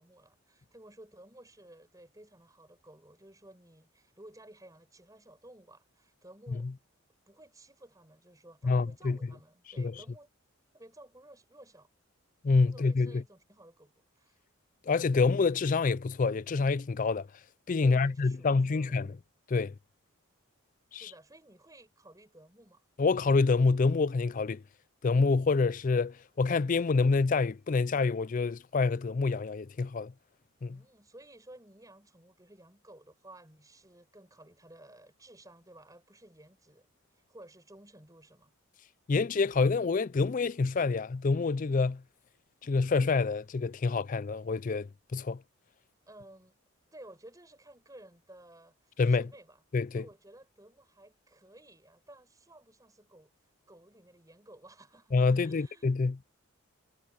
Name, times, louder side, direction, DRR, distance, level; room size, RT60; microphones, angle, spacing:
voice 1, 0.0-6.7 7.3-10.3 10.7-11.9 12.6-14.4 17.8-19.0 20.9-22.8 30.7-38.5 46.1-46.6 46.9-49.6 49.9-53.3 53.7-55.9, right 1 dB, 15° right, 5.3 m, -55 dB
voice 2, 8.6-9.2 9.8-10.0 12.4-13.2 14.9-17.3 17.7-19.2 19.5-19.7 20.9-21.1 23.0-24.6 25.0-30.1 30.6-30.8 39.1-42.0 42.6-45.4 49.0-49.3 49.7-50.1 55.1-56.2, left 4 dB, 35° left, 0.4 m, -27 dB
head